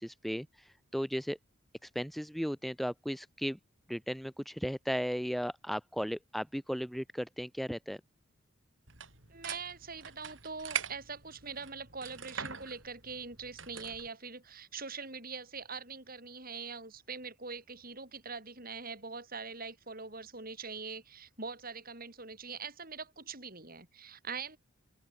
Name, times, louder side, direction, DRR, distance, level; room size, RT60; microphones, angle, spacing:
voice 1, 0.0-1.4 1.8-3.6 3.9-8.0, equal, ahead, 2.0 m, -36 dB
sound 1, 8.9-14.1, right 7 dB, 60° right, 7.8 m, -43 dB
voice 2, 9.3-24.6, right 5 dB, 45° right, 7.9 m, -43 dB
open air
head